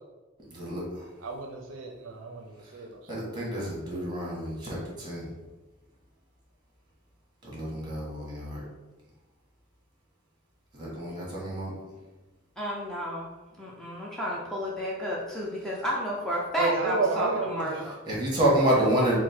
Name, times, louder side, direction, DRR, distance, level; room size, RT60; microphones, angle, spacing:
voice 1, 0.5-1.1 2.6-2.8 3.1-5.3 7.4-8.6 10.7-11.7 18.0-19.2, right 1 dB, 25° right, -5 dB, 1.4 m, -28 dB
voice 2, 1.2-3.3 16.6-17.8, right 4 dB, 70° right, 3 dB, 0.5 m, -31 dB
voice 3, 12.6-13.3 13.6-17.3 17.5-17.9, equal, 5° left, -5 dB, 0.5 m, -31 dB
4.1 x 2.1 x 4.3 m, 1.1 s
head